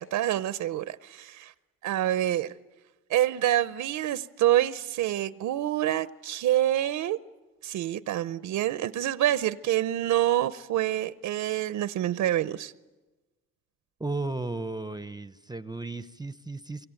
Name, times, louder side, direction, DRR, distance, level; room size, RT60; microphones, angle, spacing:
voice 1, 0.0-1.5 1.8-2.5 3.1-7.2 7.6-12.7, right 13 dB, 75° right, 0.8 m, -27 dB
voice 2, 14.0-16.9, right 3 dB, 15° right, 0.8 m, -34 dB
25.5 x 23.5 x 9.0 m
cardioid pair, 90°, 30 cm